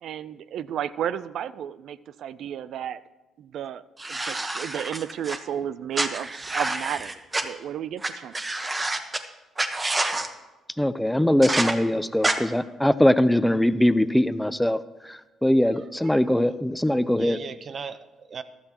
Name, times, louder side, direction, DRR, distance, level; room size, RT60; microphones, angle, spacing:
voice 1, 0.0-3.0 3.4-3.8 4.1-7.2 7.4-8.3, right 9 dB, 70° right, 16 dB, 0.4 m, -32 dB
sound 1, 4.0-5.4 5.9-7.4 8.0-8.1 8.3-9.2 9.6-10.3 11.4-11.7 12.2-12.3, right 2 dB, 25° right, 1.1 m, -27 dB
voice 2, 10.8-14.8 15.0-17.4, left 1 dB, 5° left, 13 dB, 0.6 m, -21 dB
voice 3, 15.6-16.5 17.1-18.4, right 6 dB, 50° right, 12 dB, 0.8 m, -39 dB
14.5 x 12.5 x 3.0 m, 1.1 s
supercardioid pair, 65°, 0 cm